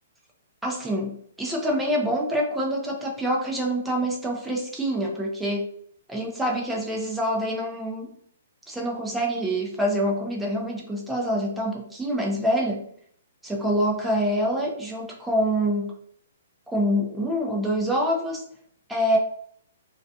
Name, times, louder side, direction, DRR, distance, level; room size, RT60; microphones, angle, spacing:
voice 1, 0.6-5.7 6.1-8.1 8.7-12.8 13.4-15.9 16.7-18.4 18.9-19.2, equal, 5° right, -2 dB, 0.5 m, -26 dB
2.3 x 2.3 x 2.6 m, 0.63 s
hypercardioid pair, 150°, 0 cm